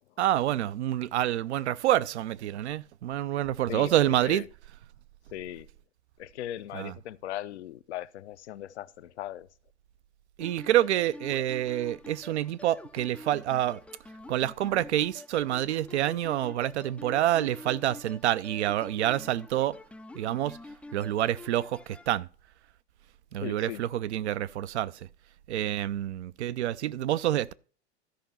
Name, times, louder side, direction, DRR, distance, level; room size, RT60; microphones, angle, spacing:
voice 1, 0.2-4.4 6.7-6.9 10.4-13.8 14.3-19.8 20.1-20.6 20.9-22.3 23.3-25.1 25.5-27.5, right 13 dB, 65° right, 0.6 m, -27 dB
voice 2, 3.7-4.4 5.3-5.7 6.2-9.5 23.4-23.8, left 13 dB, 65° left, 0.8 m, -38 dB
sound 1, 10.4-22.1, left 2 dB, 5° left, 0.4 m, -47 dB
13.0 x 5.3 x 5.7 m
figure-of-eight pair, 90°, 36 cm